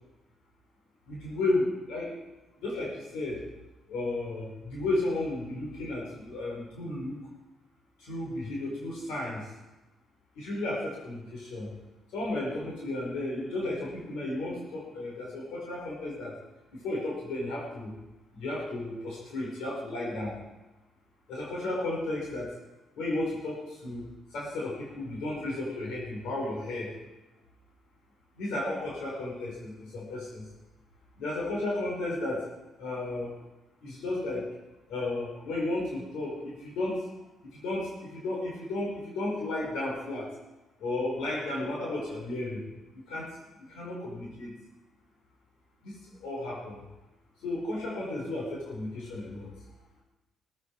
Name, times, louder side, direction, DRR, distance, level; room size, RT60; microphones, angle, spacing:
voice 1, 1.1-2.2 2.6-3.4 3.9-7.2 8.0-9.5 10.4-11.7 12.1-16.4 16.7-17.9 18.3-20.4 21.3-22.5 23.0-26.9 28.3-30.5 31.2-32.5 32.8-33.3 33.8-34.5 34.9-37.1 37.5-40.3 40.8-42.6 42.9-44.5 45.8-46.8 47.4-49.5, left 2 dB, 90° left, -3 dB, 5.4 m, -33 dB
17.5 x 15.0 x 5.0 m, 1.1 s
cardioid pair, 90°, 0 cm